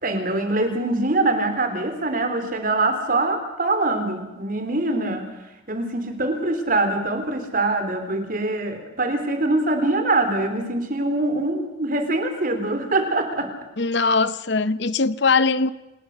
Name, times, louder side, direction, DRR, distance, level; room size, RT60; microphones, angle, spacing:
voice 1, 0.0-5.4 5.7-13.5, right 2 dB, 40° right, 3.5 m, -23 dB
voice 2, 13.8-15.7, left 4 dB, 55° left, 0.7 m, -21 dB
28.0 x 19.5 x 6.5 m
head